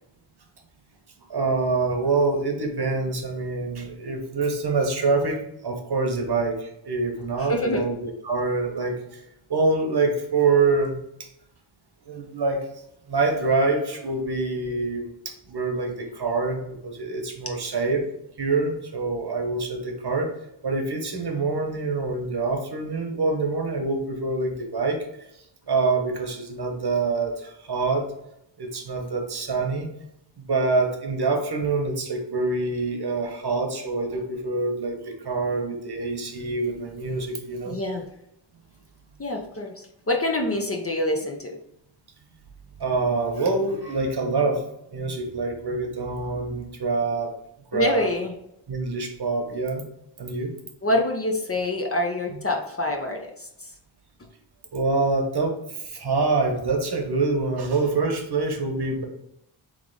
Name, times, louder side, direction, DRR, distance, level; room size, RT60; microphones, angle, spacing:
voice 1, 1.3-9.0 9.5-11.0 12.1-12.7 13.1-18.1 18.4-20.3 20.6-25.1 25.7-28.1 28.6-29.9 30.4-37.8 42.8-44.6 44.9-47.3 47.7-48.1 48.7-49.8 50.2-50.5 52.3-52.4 54.7-59.0, right 3 dB, 50° right, 3 dB, 1.0 m, -25 dB
voice 2, 7.4-7.8 37.6-38.0 39.2-39.7 40.1-41.6 47.7-48.3 50.8-53.2, left 1 dB, 30° left, 2 dB, 0.7 m, -25 dB
3.6 x 3.2 x 3.8 m, 0.79 s
cardioid pair, 60°, 50 cm